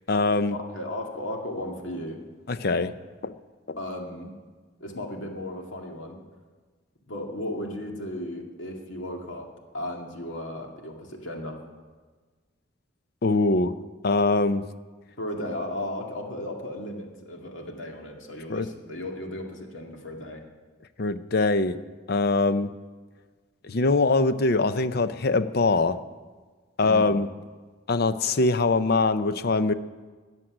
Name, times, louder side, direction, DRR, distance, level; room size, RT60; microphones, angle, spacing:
voice 1, 0.1-0.6 2.5-2.9 3.2-3.3 3.7-3.8 13.2-13.7 14.0-14.6 18.5-18.7 21.0-21.8 22.1-22.7 23.6-26.0 26.8-27.3 27.9-29.7, left 3 dB, 55° left, 12 dB, 0.6 m, -23 dB
voice 2, 0.7-2.2 3.8-4.3 4.8-6.2 7.1-11.6 15.2-20.4 26.8-27.2, left 1 dB, 75° left, 2 dB, 2.2 m, -35 dB
14.0 x 7.6 x 9.9 m, 1.4 s
head